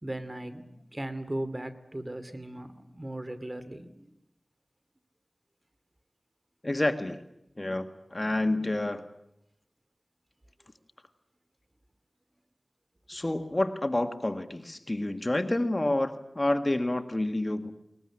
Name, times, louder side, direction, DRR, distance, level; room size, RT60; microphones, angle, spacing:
voice 1, 0.0-4.1, right 1 dB, 30° right, 11 dB, 2.6 m, -37 dB
voice 2, 6.6-7.2 7.6-9.0 13.1-17.7, left 1 dB, 35° left, 9 dB, 1.7 m, -29 dB
21.5 x 20.5 x 10.0 m, 0.82 s
wide cardioid pair, 40°, 0 cm